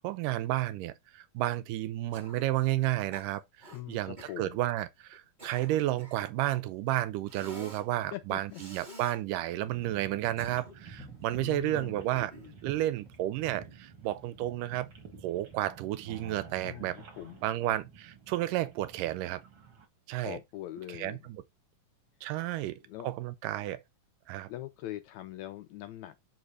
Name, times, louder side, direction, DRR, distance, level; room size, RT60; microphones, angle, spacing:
voice 1, 0.0-12.3 12.6-14.9 15.2-17.0 17.4-19.4 20.1-20.4 20.9-21.4 22.2-23.8 24.3-24.5, right 14 dB, 85° right, 2.3 m, -32 dB
Cough, 2.1-2.6 3.1-3.8 4.2-4.4 5.1-6.3 7.3-7.9 8.5-9.2 10.1-11.0 12.1-12.6, equal, 20° right, 1.6 m, -49 dB
voice 2, 3.7-4.6 8.1-8.7 11.4-12.0 16.6-17.4 20.2-21.3 22.8-23.1 24.5-26.2, left 14 dB, 80° left, 1.6 m, -42 dB
sound 1, 9.6-19.9, right 6 dB, 45° right, 1.9 m, -50 dB
sound 2, 11.0-15.7 15.9-17.2, left 1 dB, ahead, 0.7 m, -59 dB
6.8 x 4.1 x 4.8 m
omnidirectional pair, 3.8 m